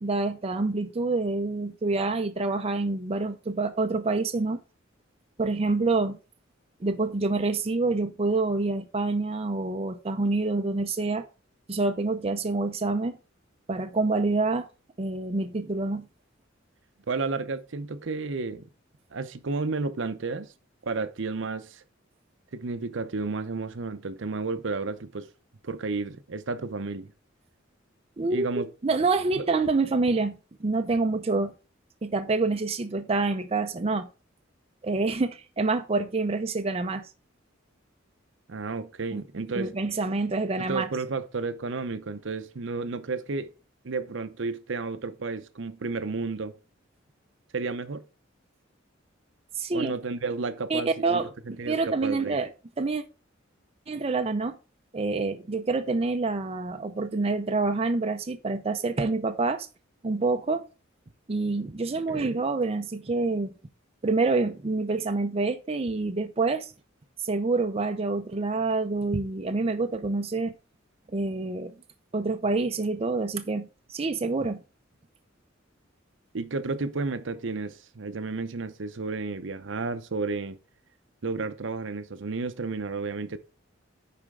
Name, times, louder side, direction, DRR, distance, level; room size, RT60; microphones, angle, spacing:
voice 1, 0.0-4.6 5.4-6.2 6.8-11.3 11.7-13.2 13.7-14.7 15.0-16.1 28.2-31.5 32.0-34.1 34.8-37.0 39.1-39.2 39.5-40.9 49.6-49.9 50.7-51.3 51.7-52.5 52.8-53.0 53.9-54.6 54.9-59.7 60.0-60.6 61.3-63.5 64.0-66.7 67.2-70.5 71.1-71.7 72.1-74.6, right 3 dB, 30° right, 0.5 m, -27 dB
voice 2, 17.1-18.7 19.1-20.5 20.8-21.8 22.5-25.3 25.6-27.1 28.3-28.7 29.4-29.5 38.5-39.7 40.6-43.5 43.8-46.5 47.5-48.0 49.7-52.4 62.1-62.4 76.3-80.6 81.2-83.4, right 3 dB, 65° right, 0.7 m, -32 dB
10.0 x 4.3 x 3.7 m
head